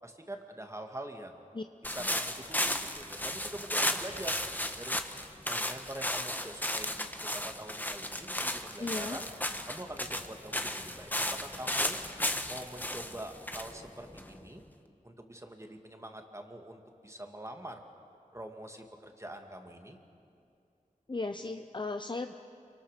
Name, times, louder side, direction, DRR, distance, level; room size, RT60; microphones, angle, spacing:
voice 1, 0.0-1.5 1.8-4.4 4.8-5.0 5.5-9.3 9.7-12.0 12.5-14.6 15.0-17.8 18.3-20.0, right 1 dB, 20° right, 4 dB, 2.2 m, -44 dB
sound 1, 1.8-14.6, left 1 dB, 15° left, 1.4 m, -34 dB
voice 2, 8.8-9.2 21.1-22.3, left 3 dB, 35° left, 7 dB, 0.8 m, -36 dB
28.0 x 24.0 x 6.8 m, 2.6 s
wide cardioid pair, 60°, 14 cm